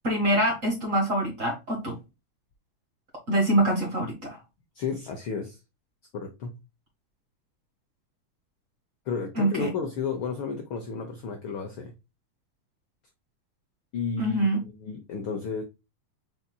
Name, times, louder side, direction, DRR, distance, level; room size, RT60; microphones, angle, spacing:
voice 1, 0.0-1.9 3.3-4.4 9.3-9.7 14.2-14.6, right 1 dB, 35° right, 1.4 m, -25 dB
voice 2, 4.7-5.6 6.1-6.6 9.1-11.9 13.9-14.4 14.8-15.6, left 5 dB, 85° left, 1.1 m, -32 dB
5.7 x 4.0 x 2.2 m
omnidirectional pair, 3.4 m